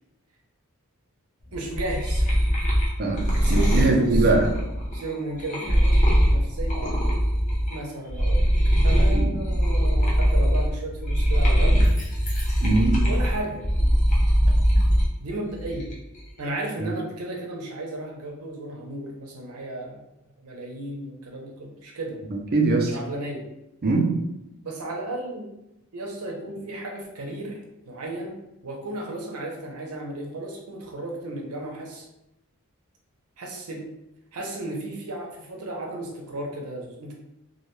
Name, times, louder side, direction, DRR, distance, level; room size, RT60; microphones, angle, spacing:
sound 1, 1.5-7.8 8.1-15.1 15.5-16.2, equal, 35° left, 0.6 m, -21 dB
voice 1, 1.5-2.3 3.4-4.3 4.9-5.9 6.3-7.0 7.7-8.5 8.8-11.9 13.0-13.6 15.2-15.9 16.4-20.0 20.4-22.2 22.9-23.4 24.6-25.4 25.9-27.6 27.9-32.1 33.4-33.8 34.3-37.1, right 1 dB, 90° right, 0 dB, 0.6 m, -34 dB
voice 2, 3.5-4.5 9.1-9.3 12.6-13.0 22.3-23.0 23.8-24.2, right 3 dB, 45° right, 2 dB, 0.4 m, -21 dB
2.2 x 2.2 x 3.0 m, 0.86 s
head